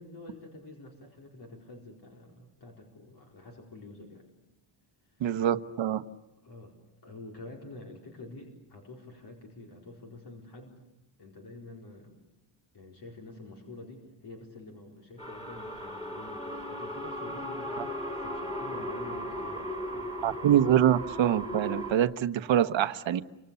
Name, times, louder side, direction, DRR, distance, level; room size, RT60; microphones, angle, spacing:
voice 1, 0.0-4.2 5.1-5.2 6.4-6.8 7.0-10.8 11.2-12.2 12.7-20.4, left 2 dB, 50° left, 0 dB, 4.5 m, -48 dB
voice 2, 5.2-6.0 17.8-17.9 20.2-23.2, right 10 dB, 65° right, 11 dB, 1.2 m, -25 dB
sound 1, 15.2-21.9, equal, 15° left, 5.1 m, -36 dB
29.5 x 26.0 x 7.0 m, 0.99 s
wide cardioid pair, 175°, 49 cm